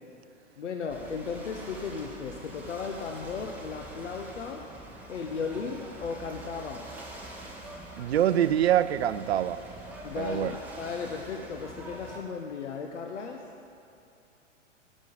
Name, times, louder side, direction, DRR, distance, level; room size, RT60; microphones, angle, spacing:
voice 1, 0.6-4.7 5.1-6.9 10.0-13.5, left 5 dB, 70° left, 3 dB, 0.9 m, -36 dB
Ocean / Boat Water vehicle, 0.9-12.2, right 1 dB, 5° right, 1.2 m, -45 dB
voice 2, 8.0-9.6 10.2-10.6, right 10 dB, 55° right, 14 dB, 0.5 m, -25 dB
10.5 x 6.3 x 7.6 m, 2.7 s
figure-of-eight pair, 105°, 38 cm